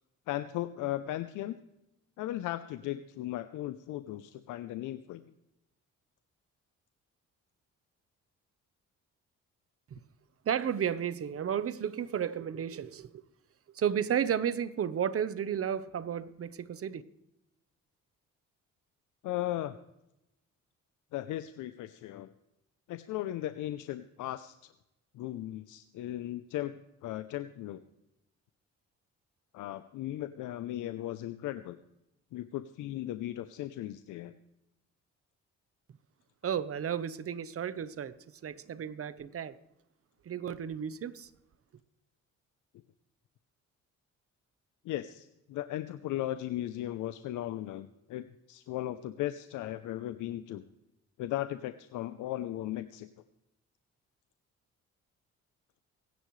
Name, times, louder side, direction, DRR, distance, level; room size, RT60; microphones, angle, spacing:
voice 1, 0.3-1.6 2.2-5.2 19.2-19.8 21.1-22.3 22.9-24.7 25.1-27.8 29.5-31.8 32.3-34.3 44.8-50.6 51.2-53.1, left 14 dB, 90° left, 0.7 m, -37 dB
voice 2, 10.4-13.2 13.7-17.0 36.4-38.2 38.4-39.6 40.2-41.3, right 8 dB, 50° right, 1.0 m, -33 dB
24.5 x 10.5 x 3.2 m
cardioid pair, 90°, 30 cm